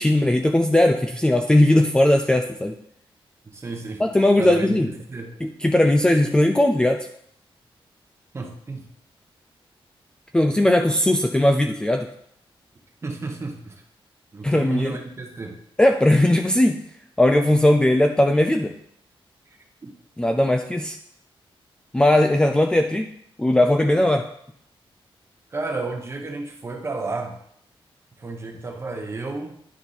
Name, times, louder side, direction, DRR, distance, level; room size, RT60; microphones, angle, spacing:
voice 1, 0.0-2.8 4.0-4.9 5.4-7.1 10.3-12.1 14.4-15.0 15.8-16.8 17.2-18.7 20.2-21.0 21.9-23.1 23.4-24.2, left 1 dB, 10° left, 4 dB, 0.4 m, -18 dB
voice 2, 3.4-4.0 4.3-5.4 8.3-8.9 13.0-13.8 14.3-15.6 19.8-19.9 25.5-27.4 28.2-29.6, right 3 dB, 30° right, 4 dB, 1.0 m, -32 dB
10.0 x 4.4 x 4.0 m, 0.69 s
wide cardioid pair, 145°, 10 cm